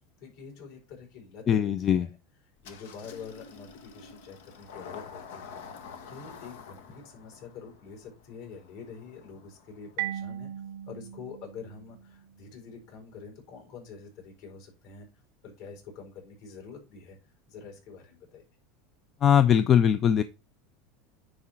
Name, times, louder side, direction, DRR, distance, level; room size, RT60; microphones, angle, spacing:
voice 1, 0.2-2.2 2.6-5.6 6.1-10.5 10.9-15.1 15.4-17.2 17.5-18.4, left 5 dB, 60° left, 1 dB, 4.8 m, -46 dB
voice 2, 1.5-2.1 19.2-20.2, left 9 dB, 30° left, 12 dB, 0.4 m, -21 dB
Engine starting, 2.6-10.0, left 6 dB, 85° left, 1.4 m, -48 dB
Marimba xylophone, 10.0-12.6, right 12 dB, 65° right, 0.6 m, -38 dB
9.7 x 3.8 x 4.5 m, 0.27 s
supercardioid pair, 145°, 0 cm